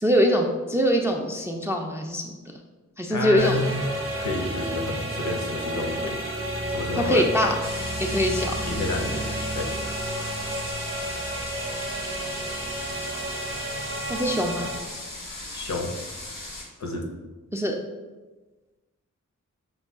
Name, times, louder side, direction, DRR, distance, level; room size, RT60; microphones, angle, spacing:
voice 1, 0.0-2.3 3.0-3.7 7.0-7.5 8.0-8.5 14.1-14.7 17.5-17.8, equal, 10° right, 2 dB, 0.3 m, -23 dB
voice 2, 3.1-3.9 4.2-6.2 6.7-7.3 8.6-9.7 15.5-16.1 16.8-17.1, left 3 dB, 60° left, 2 dB, 0.7 m, -29 dB
sound 1, 3.4-14.8, right 1 dB, 45° right, 0.7 m, -31 dB
sound 2, 7.6-16.6, left 1 dB, 75° left, 1.1 m, -38 dB
5.4 x 2.2 x 3.5 m, 1.2 s
wide cardioid pair, 85°, 32 cm